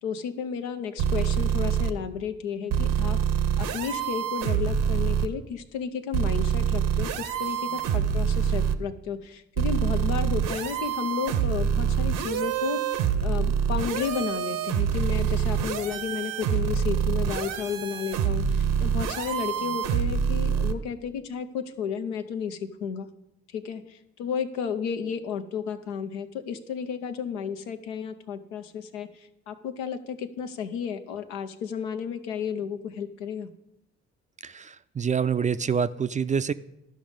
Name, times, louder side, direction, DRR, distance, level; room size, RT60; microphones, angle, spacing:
voice 1, 0.0-3.2 3.6-12.8 13.2-23.1 23.5-33.5, left 7 dB, 85° left, 8 dB, 0.6 m, -33 dB
sound 1, 1.0-1.9 2.7-5.3 6.1-8.8 9.6-20.7, right 8 dB, 70° right, 0.7 m, -26 dB
voice 2, 34.4-36.5, right 6 dB, 25° right, 14 dB, 0.4 m, -26 dB
12.0 x 5.3 x 5.1 m, 0.85 s
hypercardioid pair, 50°, 33 cm